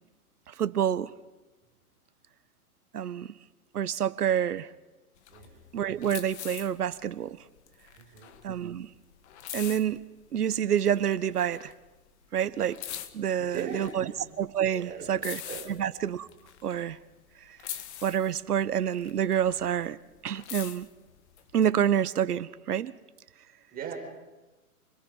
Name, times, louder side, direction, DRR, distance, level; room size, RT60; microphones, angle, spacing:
voice 1, 0.5-1.1 2.9-3.3 3.7-4.7 5.7-7.4 8.4-8.9 9.5-10.0 10.3-11.7 12.3-12.8 13.1-14.0 14.4-15.4 15.7-16.3 16.6-17.0 17.4-17.6 18.0-20.0 20.2-20.9 21.5-22.9, right 9 dB, 90° right, 15 dB, 1.3 m, -28 dB
sound 1, 5.2-10.4 10.8-12.1 12.3-17.3 17.6-19.8 20.1-21.6, left 11 dB, 50° left, 2.0 m, -43 dB
voice 2, 5.3-5.6 8.0-8.4 13.4-14.1 14.7-15.6 23.7-23.9, right 7 dB, 20° right, 1 dB, 5.0 m, -39 dB
29.5 x 21.5 x 5.6 m, 1.1 s
hypercardioid pair, 150°, 45 cm